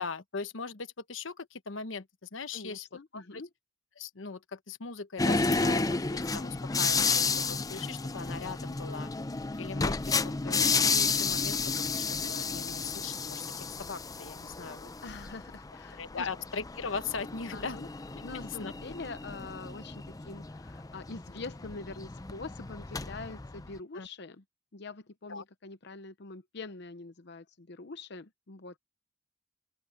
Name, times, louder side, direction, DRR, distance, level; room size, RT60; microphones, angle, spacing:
voice 1, 0.0-2.9 3.1-3.4 4.0-9.1 9.6-14.9 16.0-17.8 18.4-18.7 23.9-24.1 25.3-25.4, left 5 dB, 90° left, 1.1 m, -40 dB
voice 2, 2.5-3.5 15.0-16.3 17.5-17.9 18.2-24.4 24.7-28.8, left 3 dB, 65° left, 0.8 m, -44 dB
sound 1, 5.2-23.8, left 4 dB, 20° left, 0.5 m, -32 dB
open air
head